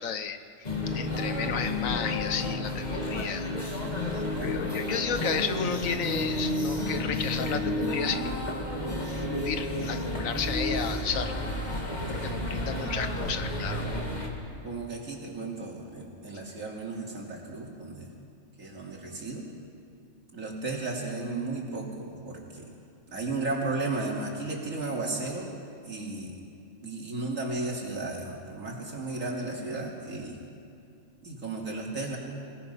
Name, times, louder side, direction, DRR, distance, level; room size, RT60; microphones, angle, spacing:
voice 1, 0.0-3.7 4.1-8.4 9.1-11.3 12.1-13.9, left 7 dB, 75° left, 9 dB, 1.3 m, -33 dB
sound 1, 0.6-14.3, left 1 dB, 30° left, 2.1 m, -31 dB
voice 2, 14.6-18.1 18.6-19.5 20.3-22.7 23.1-25.5 25.8-26.4 26.8-30.4 31.2-32.2, right 3 dB, 70° right, -1 dB, 3.2 m, -34 dB
26.0 x 17.5 x 5.6 m, 2.5 s
omnidirectional pair, 1.4 m